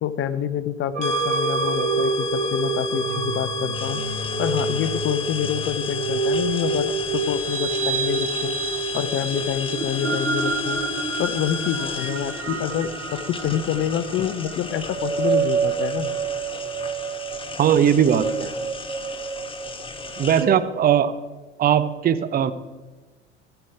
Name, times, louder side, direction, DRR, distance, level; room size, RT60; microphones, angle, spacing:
voice 1, 0.0-4.0 4.4-8.5 8.9-10.8 11.2-16.1, left 9 dB, 35° left, 13 dB, 0.8 m, -27 dB
sound 1, 0.9-20.5, right 5 dB, 85° right, 1.1 m, -28 dB
sound 2, 1.0-12.4, left 8 dB, 90° left, 0.5 m, -33 dB
sound 3, 3.7-20.4, left 4 dB, 15° left, 1.2 m, -37 dB
voice 2, 17.6-18.5 20.2-21.1 21.6-22.5, right 9 dB, 25° right, 13 dB, 0.7 m, -19 dB
14.0 x 8.1 x 4.8 m, 1.2 s
figure-of-eight pair, 70°, 35 cm